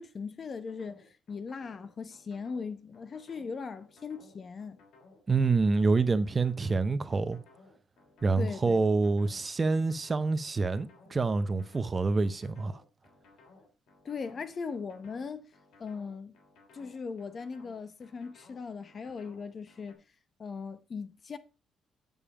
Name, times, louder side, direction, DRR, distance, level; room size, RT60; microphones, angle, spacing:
voice 1, 0.0-4.8 8.4-8.8 14.0-15.5 15.8-16.3 16.7-20.0 20.4-21.4, left 5 dB, 45° left, 0.9 m, -39 dB
sound 1, 0.7-19.9, left 3 dB, 80° left, 3.3 m, -59 dB
voice 2, 5.3-7.4 8.2-12.8, right 3 dB, 30° right, 0.7 m, -27 dB
8.6 x 5.4 x 4.9 m
cardioid pair, 90°, 0 cm